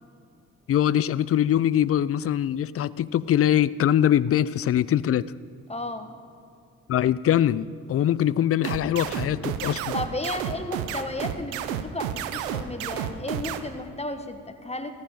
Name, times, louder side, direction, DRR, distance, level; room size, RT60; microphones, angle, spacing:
voice 1, 0.7-5.3 6.9-9.9, left 11 dB, 40° left, 19 dB, 0.4 m, -23 dB
voice 2, 5.7-6.1 9.9-14.9, left 2 dB, 15° left, 7 dB, 1.4 m, -33 dB
sound 1, 8.6-13.6, right 10 dB, 90° right, 0.6 m, -30 dB
14.5 x 12.0 x 5.1 m, 2.4 s
hypercardioid pair, 40°, 39 cm